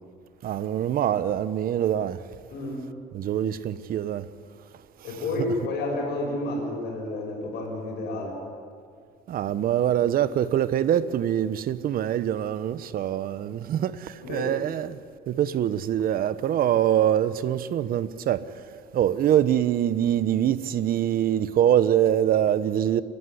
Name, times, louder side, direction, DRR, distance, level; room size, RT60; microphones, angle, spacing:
voice 1, 0.4-2.2 3.1-4.3 5.4-5.5 9.3-15.0 15.3-18.5 18.9-23.0, right 10 dB, 60° right, 1.0 m, -24 dB
voice 2, 2.5-2.8 5.0-8.4 14.2-14.5, left 2 dB, 80° left, 7.3 m, -30 dB
30.0 x 14.0 x 9.8 m
cardioid pair, 110°, 17 cm